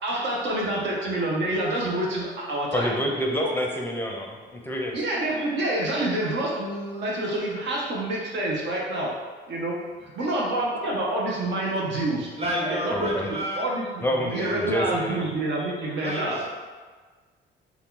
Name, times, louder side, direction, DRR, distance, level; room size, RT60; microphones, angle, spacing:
voice 1, 0.0-2.9 3.4-3.5 4.1-4.2 4.9-9.1 9.5-12.3 12.6-16.5, right 1 dB, 65° right, -3 dB, 0.6 m, -27 dB
voice 2, 2.7-5.0 12.9-13.3 14.0-15.3, equal, 10° left, 0 dB, 0.5 m, -28 dB
voice 3, 12.4-13.7 14.3-14.8 16.0-16.5, equal, 30° right, -3 dB, 0.9 m, -31 dB
2.7 x 2.3 x 3.6 m, 1.4 s
cardioid pair, 90°, 20 cm